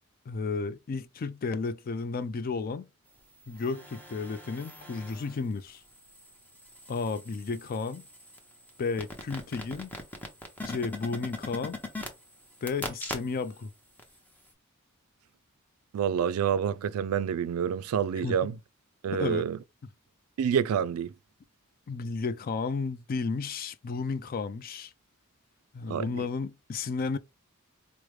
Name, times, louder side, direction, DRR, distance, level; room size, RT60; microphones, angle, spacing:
voice 1, 0.3-2.9 3.5-5.8 6.9-8.0 8.8-9.9 10.7-11.8 12.6-13.7 18.2-18.4 19.1-19.4 21.9-24.9 25.7-27.2, left 4 dB, 40° left, 0.3 m, -33 dB
sound 1, 3.4-5.4 5.9-13.6 14.0-14.1, left 2 dB, 10° left, 0.7 m, -42 dB
voice 2, 15.9-18.6 19.0-19.6 20.4-21.1 25.9-26.1, right 8 dB, 75° right, 0.3 m, -28 dB
4.7 x 2.1 x 3.1 m
head